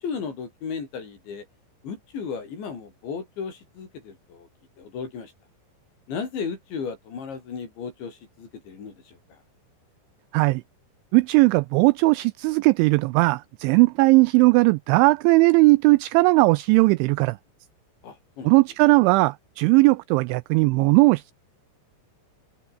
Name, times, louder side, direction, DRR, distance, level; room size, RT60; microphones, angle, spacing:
voice 1, 0.0-1.4 1.8-4.5 4.8-5.3 6.1-9.2 18.0-18.5, left 6 dB, 60° left, 7.8 m, -35 dB
voice 2, 11.1-17.4 18.4-21.3, right 24 dB, 85° right, 2.7 m, -18 dB
open air
omnidirectional pair, 5.8 m